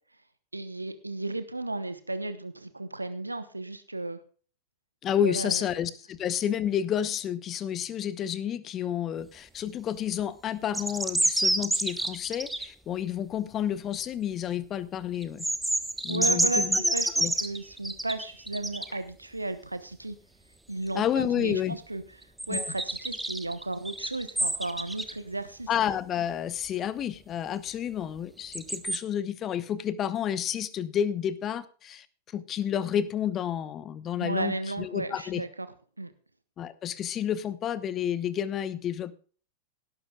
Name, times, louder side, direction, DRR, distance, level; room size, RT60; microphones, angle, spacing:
voice 1, 0.5-4.2 5.2-5.7 16.1-20.2 20.7-22.0 22.5-25.7 34.2-35.7 36.0-36.1, right 2 dB, 85° right, 11 dB, 1.0 m, -34 dB
voice 2, 5.0-15.4 16.0-17.3 20.9-21.8 22.5-22.7 25.7-32.1 32.3-35.4 36.6-39.2, left 9 dB, 30° left, 17 dB, 1.0 m, -30 dB
sound 1, 10.6-12.6 15.2-19.0 22.4-25.1 28.5-29.0, right 1 dB, 5° right, 1.1 m, -28 dB
18.5 x 12.0 x 2.4 m, 0.41 s
figure-of-eight pair, 90°, 0 cm